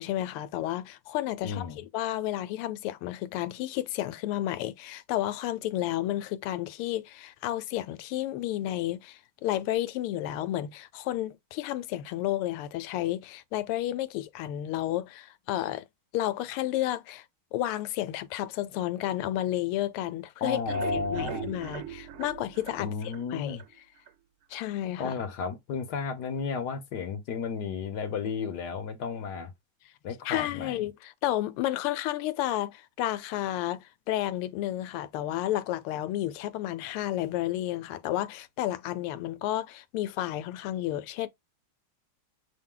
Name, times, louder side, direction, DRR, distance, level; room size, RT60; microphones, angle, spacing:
voice 1, 0.0-15.8 16.1-17.2 17.5-20.6 20.9-23.6 24.5-25.2 30.2-41.3, left 13 dB, 90° left, 1.5 m, -31 dB
voice 2, 1.4-1.8 20.4-21.5 22.8-23.6 25.0-29.5 30.0-30.8, left 5 dB, 60° left, 1.3 m, -33 dB
sound 1, 20.5-23.7 24.1-24.2 24.5-24.6 25.0-25.1, right 11 dB, 75° right, 1.4 m, -40 dB
6.1 x 2.2 x 3.7 m
omnidirectional pair, 2.4 m